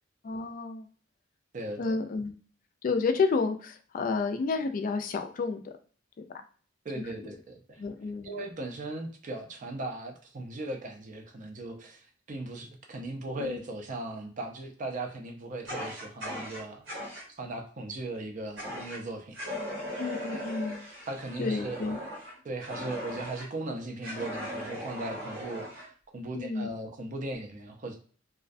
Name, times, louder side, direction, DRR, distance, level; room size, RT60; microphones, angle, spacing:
voice 1, 0.2-0.9 1.8-2.3 2.8-5.7 6.2-6.3 7.2-7.3 7.8-8.3 13.4-13.6 20.0-20.9 21.4-22.0 26.3-26.7, left 4 dB, 45° left, 0.3 m, -30 dB
voice 2, 1.5-2.0 6.8-7.8 8.2-16.9 17.3-19.4 21.1-21.8 22.4-28.0, right 2 dB, 40° right, 0.4 m, -38 dB
Fire, 15.7-17.3 18.6-19.0 19.3-23.5 24.0-25.9, equal, 65° right, 0.9 m, -38 dB
2.3 x 2.1 x 2.5 m
head